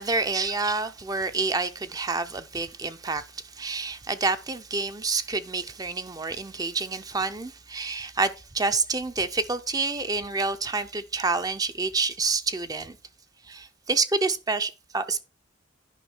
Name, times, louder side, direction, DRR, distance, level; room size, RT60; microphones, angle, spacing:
voice 1, 0.0-13.0 13.4-15.2, right 3 dB, 20° right, 0.5 m, -28 dB
10.0 x 5.5 x 4.3 m
head